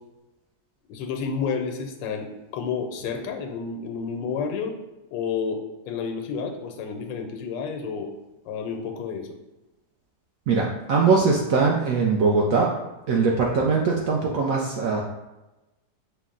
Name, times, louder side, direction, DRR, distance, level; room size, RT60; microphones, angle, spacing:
voice 1, 0.9-4.7 5.1-8.1 8.4-9.3, left 5 dB, 90° left, 4 dB, 1.3 m, -30 dB
voice 2, 10.5-12.7 13.1-15.0, right 4 dB, 75° right, -1 dB, 0.7 m, -21 dB
5.7 x 2.0 x 3.7 m, 1.0 s
omnidirectional pair, 1.9 m